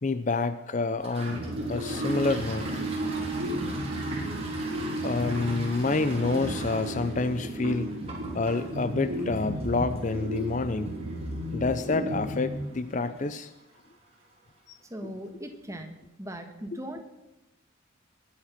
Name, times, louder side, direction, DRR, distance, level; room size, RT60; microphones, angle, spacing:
voice 1, 0.0-1.4 1.7-2.7 5.0-7.9 8.3-10.9 11.5-13.5 14.7-15.1 16.7-16.8, left 3 dB, 40° left, 13 dB, 0.5 m, -28 dB
Toilet flush, 0.9-14.3, right 2 dB, 30° right, 3.3 m, -43 dB
sound 1, 1.3-13.2, right 1 dB, 60° right, 2.7 m, -33 dB
voice 2, 14.9-17.0, right 1 dB, 15° right, 5 dB, 1.5 m, -39 dB
20.0 x 8.8 x 5.8 m, 0.94 s
head